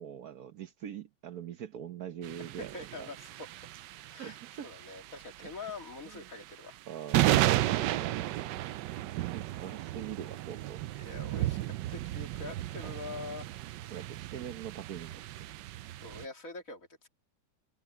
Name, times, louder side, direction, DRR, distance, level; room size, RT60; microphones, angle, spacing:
voice 1, 0.0-3.1 4.2-4.7 5.4-5.5 6.0-6.2 6.9-8.7 9.3-10.8 13.9-15.5, right 9 dB, 60° right, 1.3 m, -43 dB
sound 1, 2.2-16.3, right 15 dB, 80° right, 1.2 m, -34 dB
voice 2, 2.6-3.3 4.1-4.4 4.6-6.8 11.0-13.5 16.0-17.1, left 3 dB, 50° left, 2.8 m, -44 dB
open air
omnidirectional pair, 1.9 m